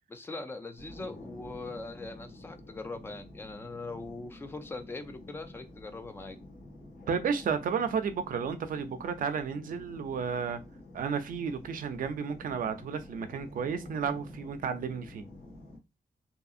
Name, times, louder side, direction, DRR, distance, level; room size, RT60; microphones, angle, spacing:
voice 1, 0.1-6.4, left 3 dB, 15° left, 0.3 m, -41 dB
sound 1, 0.8-15.8, left 1 dB, 70° left, 1.2 m, -49 dB
voice 2, 7.1-10.6 10.9-15.2, right 6 dB, 55° right, 0.4 m, -32 dB
2.7 x 2.6 x 2.4 m
wide cardioid pair, 170°, 17 cm